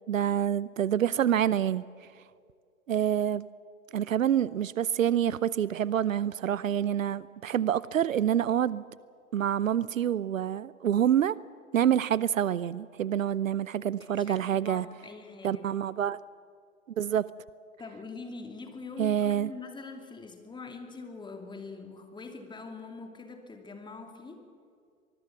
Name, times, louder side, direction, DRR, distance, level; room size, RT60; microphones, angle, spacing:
voice 1, 0.1-1.8 2.9-3.4 3.9-8.8 9.3-11.4 11.7-14.9 15.4-16.2 17.0-17.3 19.0-19.5, right 10 dB, 65° right, 20 dB, 0.7 m, -27 dB
voice 2, 14.0-15.6 17.8-24.4, left 3 dB, 10° left, 4 dB, 2.8 m, -43 dB
25.0 x 20.5 x 7.4 m, 2.2 s
figure-of-eight pair, 100°, 42 cm